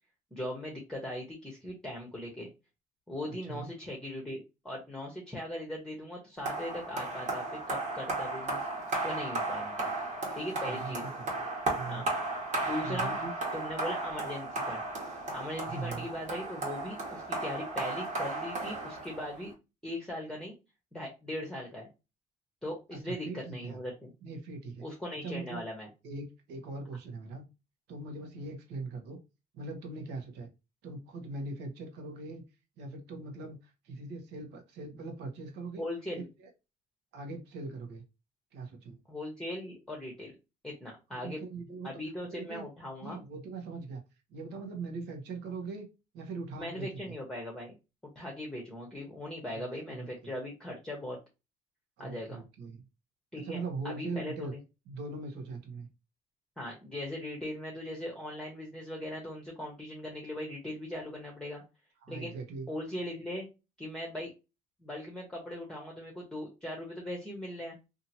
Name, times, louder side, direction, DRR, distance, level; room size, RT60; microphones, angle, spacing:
voice 1, 0.3-2.5 3.1-8.7 9.0-9.9 10.3-11.0 11.9-12.1 12.6-13.2 13.5-14.8 15.3-19.5 19.8-20.5 20.9-21.9 22.6-24.1 24.8-25.9 35.8-36.3 39.1-40.3 40.6-41.4 41.8-43.2 46.6-47.8 48.2-51.2 52.0-52.4 53.3-54.6 56.6-61.6 62.1-62.3 62.7-63.5 63.8-64.3 64.8-67.8, left 1 dB, 5° left, -1 dB, 0.8 m, -39 dB
voice 2, 3.3-3.7 10.7-11.4 11.7-12.0 12.8-13.3 15.6-16.1 22.9-23.8 24.2-24.9 25.2-25.6 26.0-27.4 27.9-29.2 29.5-30.5 30.8-32.4 32.8-35.8 36.2-36.5 37.1-38.0 38.5-39.0 41.2-41.9 42.3-42.7 43.0-44.0 44.3-45.9 46.1-47.1 49.5-49.6 49.9-50.3 52.0-52.8 53.4-54.5 54.9-55.9 62.0-62.7, right 3 dB, 85° right, 4 dB, 0.9 m, -41 dB
sound 1, 6.5-19.5, right 2 dB, 45° right, 1.2 m, -35 dB
2.8 x 2.5 x 2.7 m, 0.27 s
cardioid pair, 110°, 17 cm